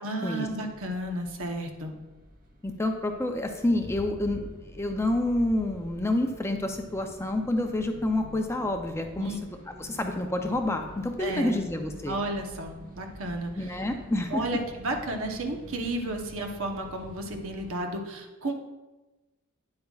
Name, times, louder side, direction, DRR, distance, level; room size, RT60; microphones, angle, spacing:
voice 1, 0.0-1.9 9.2-9.4 11.2-11.6 12.1-13.5 14.3-18.5, right 1 dB, 65° right, 3 dB, 1.0 m, -32 dB
sound 1, 0.6-17.7, equal, 40° right, 1.2 m, -47 dB
voice 2, 2.6-9.3 9.8-12.2 13.6-14.4, left 1 dB, 10° left, 4 dB, 0.5 m, -28 dB
9.7 x 7.7 x 2.4 m, 1.1 s
head